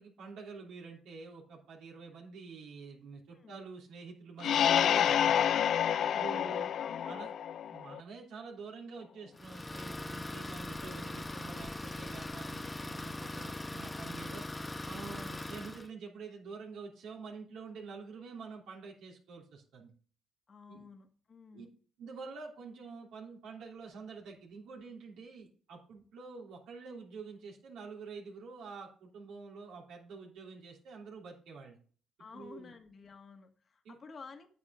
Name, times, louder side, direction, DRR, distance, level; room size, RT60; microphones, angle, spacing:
voice 1, 0.0-5.4 6.0-6.7 7.0-7.3 7.7-14.4 14.8-19.9 20.7-20.8 21.5-21.7 22.0-31.8 32.3-32.7 33.8-34.0, right 4 dB, 85° right, -2 dB, 3.2 m, -47 dB
sound 1, 4.4-8.0, left 9 dB, 65° left, 0.4 m, -28 dB
voice 2, 6.3-7.2 20.5-21.7 32.2-34.5, left 5 dB, 45° left, 6 dB, 1.7 m, -52 dB
Idling, 9.4-15.9, left 2 dB, 15° left, 0.9 m, -41 dB
9.2 x 8.5 x 3.7 m, 0.42 s
cardioid pair, 90°, 0 cm